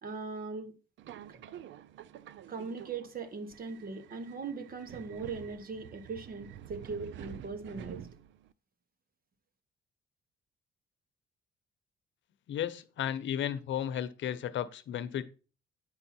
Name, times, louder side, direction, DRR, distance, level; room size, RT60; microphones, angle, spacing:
voice 1, 0.0-0.7 1.3-1.6 2.5-8.1, right 4 dB, 45° right, 1.4 m, -40 dB
Subway metro underground, 1.0-8.5, right 11 dB, 70° right, 0.5 m, -49 dB
voice 2, 12.5-15.2, left 10 dB, 70° left, 0.8 m, -34 dB
8.9 x 5.4 x 4.3 m
cardioid pair, 90°, 20 cm